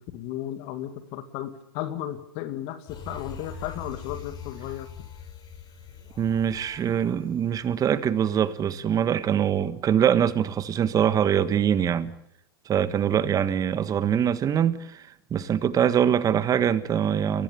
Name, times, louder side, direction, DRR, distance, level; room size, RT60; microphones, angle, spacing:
voice 1, 0.0-4.9, left 12 dB, 50° left, 2.2 m, -34 dB
sound 1, 2.9-8.5 8.9-9.0, left 5 dB, 30° left, 6.9 m, -43 dB
voice 2, 6.2-12.1 12.7-17.4, right 9 dB, 25° right, 1.5 m, -23 dB
30.0 x 16.0 x 6.9 m
hypercardioid pair, 110°, 13 cm